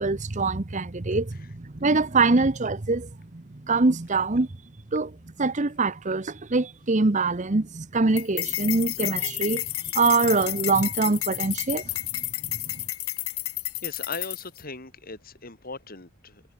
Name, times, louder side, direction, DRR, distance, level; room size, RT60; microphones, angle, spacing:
voice 1, 0.0-4.5 4.9-5.1 5.4-11.8, right 3 dB, 35° right, 0.8 m, -24 dB
voice 2, 1.1-1.5 13.8-16.4, left 3 dB, 40° left, 3.1 m, -39 dB
sound 1, 8.2-14.6, left 16 dB, 75° left, 3.1 m, -31 dB
head